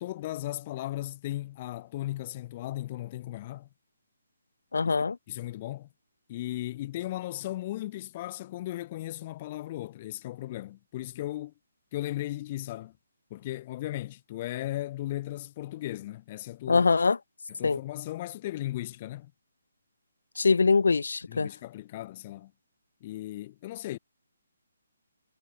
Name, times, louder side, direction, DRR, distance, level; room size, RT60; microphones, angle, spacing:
voice 1, 0.0-3.7 4.8-5.9 6.3-11.5 11.9-12.9 13.3-16.9 17.6-19.3 21.3-22.5 23.0-24.0, left 15 dB, 30° left, 2.5 m, -36 dB
voice 2, 4.7-5.2 16.7-17.2 17.6-17.8 20.4-21.5, left 4 dB, 60° left, 0.7 m, -23 dB
figure-of-eight pair, 140°, 0 cm